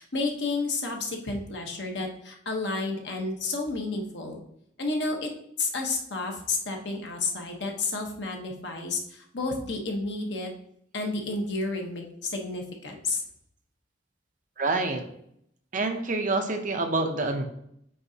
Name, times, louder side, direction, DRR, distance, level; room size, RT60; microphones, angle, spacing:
voice 1, 0.0-4.4 4.8-5.3 5.6-10.5 10.9-13.2, left 3 dB, 65° left, 2 dB, 1.1 m, -31 dB
voice 2, 14.6-15.0 15.7-17.4, right 3 dB, 45° right, 5 dB, 0.7 m, -27 dB
8.6 x 3.9 x 2.8 m, 0.71 s
head